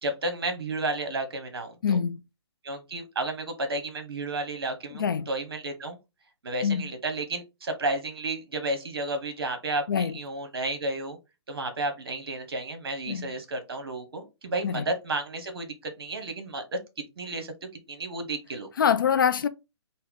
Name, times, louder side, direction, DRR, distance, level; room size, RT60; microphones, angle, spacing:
voice 1, 0.0-2.0 2.6-6.0 6.4-11.2 11.5-16.6 17.2-18.7, right 2 dB, 55° right, 1.0 m, -32 dB
voice 2, 1.8-2.2 4.9-5.3 6.6-6.9 9.9-10.1 13.1-13.3 14.6-14.9 18.8-19.5, left 7 dB, 50° left, 0.4 m, -25 dB
4.2 x 2.1 x 3.6 m
figure-of-eight pair, 130°, 15 cm